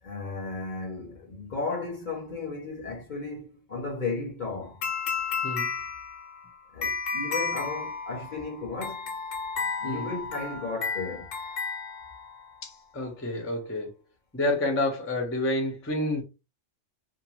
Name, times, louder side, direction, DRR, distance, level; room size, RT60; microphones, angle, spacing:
voice 1, 0.0-4.8 6.7-9.2 9.8-11.3, left 3 dB, 45° left, 0.7 m, -35 dB
sound 1, 4.8-12.5, left 4 dB, 85° left, 1.0 m, -33 dB
voice 2, 9.8-10.1 12.6-13.9 14.3-16.2, left 1 dB, 15° left, 0.4 m, -29 dB
2.5 x 2.2 x 2.9 m
omnidirectional pair, 1.3 m